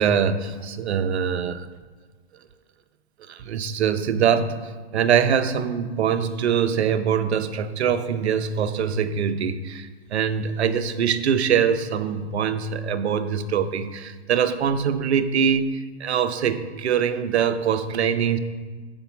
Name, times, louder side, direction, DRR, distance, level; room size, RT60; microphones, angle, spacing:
voice 1, 0.0-1.7 3.3-4.6 4.9-15.7 16.0-18.4, right 7 dB, 70° right, 11 dB, 0.8 m, -23 dB
7.0 x 5.4 x 7.0 m, 1.4 s
hypercardioid pair, 135°, 34 cm